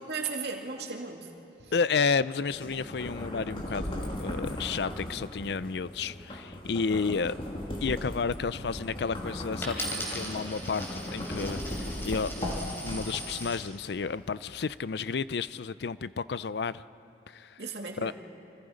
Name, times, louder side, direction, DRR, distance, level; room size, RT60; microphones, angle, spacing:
voice 1, 0.1-1.3 1.6-1.7 17.6-18.1, right 4 dB, 70° right, 2.5 m, -36 dB
voice 2, 1.7-7.4 7.8-16.8 17.3-17.6 18.0-18.1, left 5 dB, 70° left, 0.5 m, -31 dB
sound 1, 2.5-13.5, left 1 dB, 30° left, 2.8 m, -37 dB
Coin (dropping), 9.6-13.6 14.3-14.8, equal, 15° left, 4.1 m, -39 dB
29.5 x 26.0 x 5.1 m
head